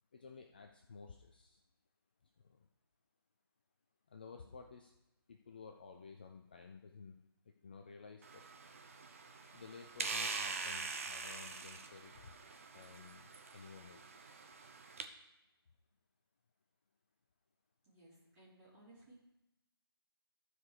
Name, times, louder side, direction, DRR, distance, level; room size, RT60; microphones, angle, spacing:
voice 1, 0.1-1.6 2.2-2.7 4.1-4.9 5.3-8.4 9.5-12.3 12.7-14.5, left 5 dB, 20° left, 4 dB, 0.4 m, -54 dB
sound 1, 8.2-15.0, right 4 dB, 35° right, 0.8 m, -44 dB
voice 2, 17.8-19.2, right 1 dB, 15° right, -8 dB, 3.7 m, -61 dB
14.0 x 4.9 x 4.9 m, 0.92 s
figure-of-eight pair, 155°, 13 cm